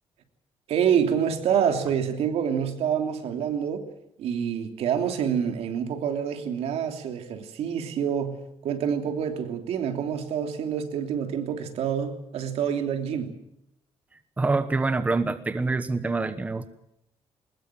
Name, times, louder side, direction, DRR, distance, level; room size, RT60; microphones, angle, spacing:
voice 1, 0.7-3.9 4.2-13.4, right 8 dB, 85° right, 6 dB, 3.0 m, -27 dB
voice 2, 14.4-16.7, right 3 dB, 15° right, 11 dB, 1.0 m, -25 dB
22.0 x 20.5 x 7.6 m, 0.77 s
cardioid pair, 175°, 10 cm